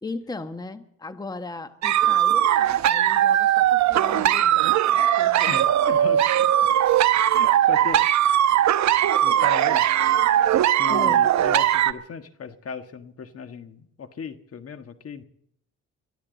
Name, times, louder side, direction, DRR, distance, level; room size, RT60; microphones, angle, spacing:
voice 1, 0.0-4.8 5.1-5.5 6.0-6.2 10.9-11.3, left 3 dB, 15° left, 9 dB, 1.1 m, -37 dB
sound 1, 1.8-11.9, right 11 dB, 65° right, 0.9 m, -19 dB
voice 2, 5.4-6.4 6.9-7.0 7.3-8.0 9.2-9.8 10.7-15.2, left 6 dB, 50° left, 8 dB, 1.6 m, -36 dB
23.0 x 14.5 x 4.0 m, 0.71 s
cardioid pair, 90°, 30 cm